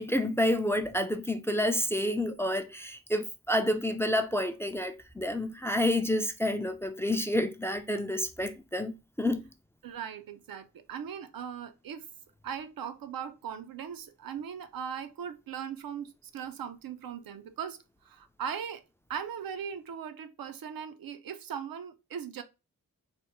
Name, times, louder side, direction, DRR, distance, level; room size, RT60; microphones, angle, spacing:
voice 1, 0.0-9.5, left 1 dB, 10° left, 0.3 m, -29 dB
voice 2, 9.8-12.1 12.4-18.8 19.1-22.4, right 8 dB, 85° right, 0.5 m, -39 dB
3.3 x 2.1 x 2.9 m
cardioid pair, 55°, 34 cm